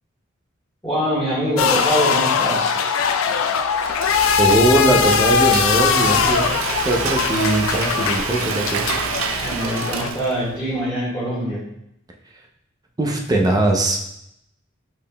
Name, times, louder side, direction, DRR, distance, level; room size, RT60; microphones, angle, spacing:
voice 1, 0.8-2.8 9.4-11.6, equal, 10° left, -12 dB, 1.6 m, -23 dB
sound 1, 1.6-10.1, left 6 dB, 90° left, 0.4 m, -21 dB
Frying (food), 3.5-10.6, right 5 dB, 90° right, 0.4 m, -28 dB
voice 2, 4.4-6.5 6.8-8.9 13.0-14.0, right 1 dB, 20° right, 1 dB, 0.6 m, -20 dB
5.4 x 4.1 x 2.2 m, 0.79 s
head